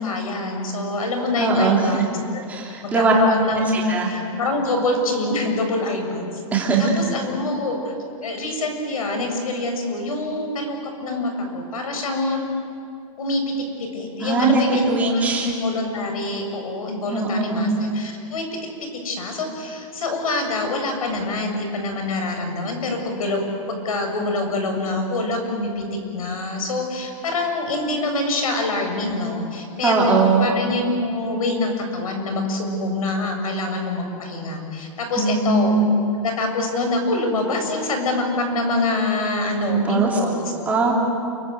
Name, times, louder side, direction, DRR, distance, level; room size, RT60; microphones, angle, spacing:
voice 1, 0.0-2.1 2.3-2.4 2.8-7.9 8.2-12.4 13.2-13.5 13.9-18.5 19.0-25.8 26.1-35.8 36.2-40.5, left 2 dB, 80° left, 4 dB, 7.6 m, -25 dB
voice 2, 1.4-2.0 2.5-3.1 3.7-4.1 6.5-6.9 14.2-15.5 17.1-17.7 29.8-30.5 35.2-35.9 39.6-40.1 40.7-40.9, right 4 dB, 10° right, -3 dB, 3.2 m, -20 dB
30.0 x 23.5 x 8.1 m, 2.5 s
supercardioid pair, 175°, 18 cm